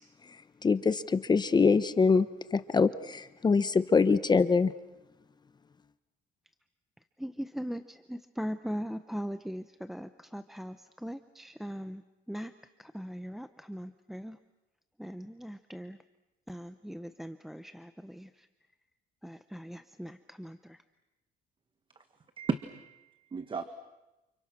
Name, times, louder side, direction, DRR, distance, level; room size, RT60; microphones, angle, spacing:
voice 1, 0.6-4.7, left 4 dB, 25° left, 0.9 m, -24 dB
voice 2, 7.2-12.5 12.8-14.4 15.0-16.0 16.5-18.5 19.2-20.8, equal, ahead, 0.8 m, -40 dB
voice 3, 22.4-23.6, right 5 dB, 30° right, 1.5 m, -35 dB
29.5 x 29.5 x 6.2 m
cardioid pair, 110°, 17 cm